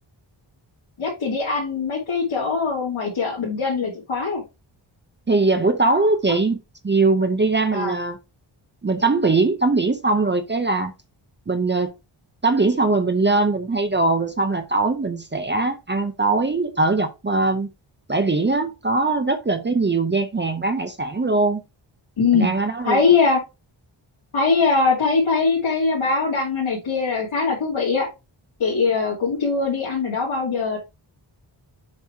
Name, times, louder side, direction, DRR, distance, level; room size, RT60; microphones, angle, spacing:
voice 1, 1.0-4.4 7.7-7.9 22.2-22.5 22.8-23.4 24.3-28.1 28.6-30.8, left 4 dB, 80° left, 2.6 m, -21 dB
voice 2, 5.3-8.2 8.8-10.9 11.5-11.9 12.4-17.7 18.1-21.6 22.3-23.1, right 3 dB, 25° right, 0.7 m, -21 dB
7.3 x 3.0 x 4.4 m
wide cardioid pair, 145°, 48 cm